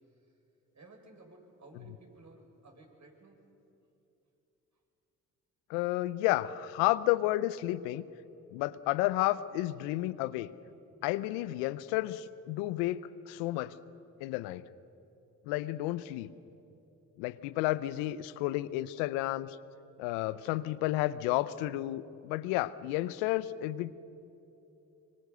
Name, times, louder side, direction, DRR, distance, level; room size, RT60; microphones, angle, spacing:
voice 1, 0.7-3.4, right 2 dB, 45° right, 1 dB, 6.1 m, -56 dB
voice 2, 5.7-8.0 8.5-10.5 11.0-13.7 14.2-14.6 15.5-16.3 17.2-19.6 20.0-23.9, left 16 dB, 90° left, 17 dB, 0.7 m, -31 dB
25.0 x 25.0 x 6.7 m, 2.9 s
hypercardioid pair, 45°, 39 cm